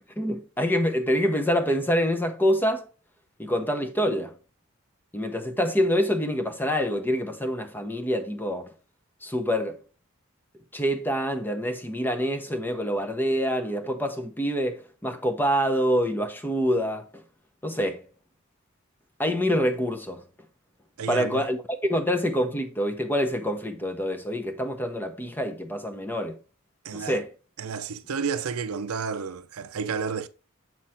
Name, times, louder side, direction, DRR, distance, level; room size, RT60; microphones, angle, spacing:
voice 1, 0.2-2.9 3.4-4.3 5.1-8.7 9.2-9.8 10.7-17.2 17.6-18.0 19.2-20.2 21.1-26.4 26.9-27.3, equal, 10° left, 0.7 m, -26 dB
voice 2, 21.0-21.4 26.8-27.2 27.6-30.3, right 6 dB, 80° right, 0.6 m, -31 dB
7.6 x 2.9 x 5.7 m
head